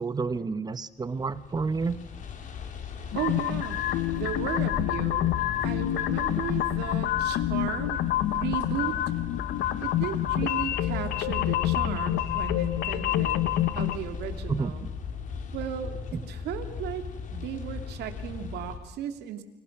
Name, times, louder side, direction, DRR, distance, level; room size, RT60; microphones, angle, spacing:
voice 1, 0.0-2.0 14.5-14.7, right 4 dB, 25° right, 14 dB, 1.2 m, -29 dB
sound 1, 1.0-18.8, left 6 dB, 50° left, 3.7 m, -37 dB
sound 2, 3.1-14.0, left 14 dB, 80° left, 1.4 m, -28 dB
voice 2, 3.1-3.8 4.1-8.0 8.3-9.0 9.8-13.5 13.7-14.8 15.5-19.4, right 10 dB, 75° right, 7 dB, 2.8 m, -35 dB
29.5 x 24.5 x 6.1 m, 0.98 s
cardioid pair, 110°, 17 cm